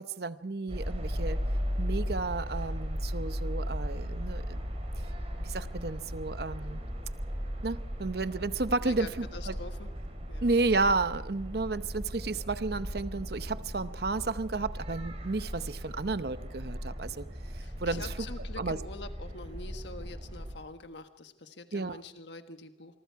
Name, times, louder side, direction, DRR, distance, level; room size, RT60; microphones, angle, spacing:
voice 1, 0.0-1.4 1.8-4.6 5.0-5.1 5.4-6.8 7.6-9.5 10.4-17.3 17.8-18.1 18.6-18.8 21.7-22.0, right 3 dB, 55° right, 13 dB, 0.8 m, -32 dB
sound 1, 0.7-20.5, equal, 35° right, 3.7 m, -36 dB
voice 2, 8.8-9.9 10.3-10.5 17.6-23.0, left 3 dB, 70° left, 7 dB, 1.4 m, -45 dB
25.5 x 23.5 x 4.7 m, 0.94 s
head